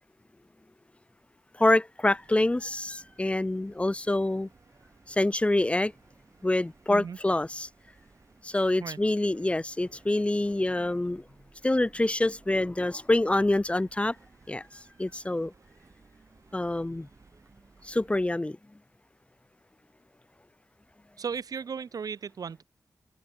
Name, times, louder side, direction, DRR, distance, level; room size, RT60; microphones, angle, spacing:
voice 1, 1.6-4.5 5.1-5.9 6.4-7.7 8.4-11.2 11.6-14.2 14.5-14.6 15.0-15.5 16.5-17.1 17.8-18.6, left 1 dB, 20° left, 0.5 m, -26 dB
sound 1, 2.1-18.3, right 4 dB, 55° right, 4.7 m, -59 dB
voice 2, 21.2-22.6, right 6 dB, 85° right, 0.7 m, -35 dB
open air
wide cardioid pair, 70°, 6 cm